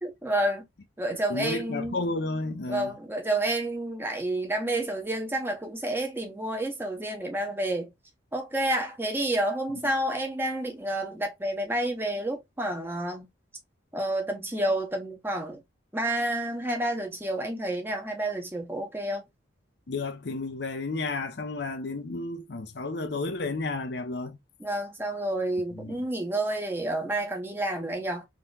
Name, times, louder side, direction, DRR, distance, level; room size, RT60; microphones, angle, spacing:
voice 1, 0.0-0.7 1.0-2.0 2.7-7.9 8.3-13.3 13.9-15.6 15.9-19.2 24.6-28.3, right 1 dB, 10° right, 0.9 m, -29 dB
voice 2, 1.3-2.9 9.7-9.8 19.9-24.4 25.7-26.0, left 3 dB, 60° left, 0.6 m, -32 dB
3.7 x 3.0 x 2.3 m
head